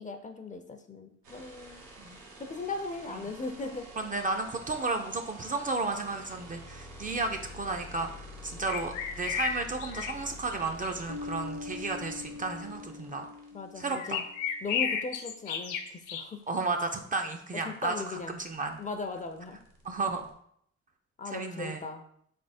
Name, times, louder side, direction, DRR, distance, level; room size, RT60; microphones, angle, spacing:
voice 1, 0.0-1.9 2.4-3.9 13.5-14.3 14.6-16.4 17.6-18.3 18.8-19.6 21.2-22.0, left 3 dB, 25° left, 5 dB, 0.5 m, -38 dB
sound 1, 1.2-13.5 15.6-15.7 15.9-20.3, equal, 85° right, 1.0 m, -49 dB
voice 2, 4.0-13.3 13.8-14.2 16.5-18.8 19.8-20.3 21.3-21.9, right 3 dB, 30° right, 5 dB, 0.4 m, -33 dB
sound 2, 8.6-10.1 10.5-11.0 13.9-16.2, left 7 dB, 90° left, 0.5 m, -33 dB
sound 3, 11.1-14.4, left 4 dB, 60° left, 0.7 m, -42 dB
3.5 x 3.0 x 4.1 m, 0.69 s
cardioid pair, 90°, 30 cm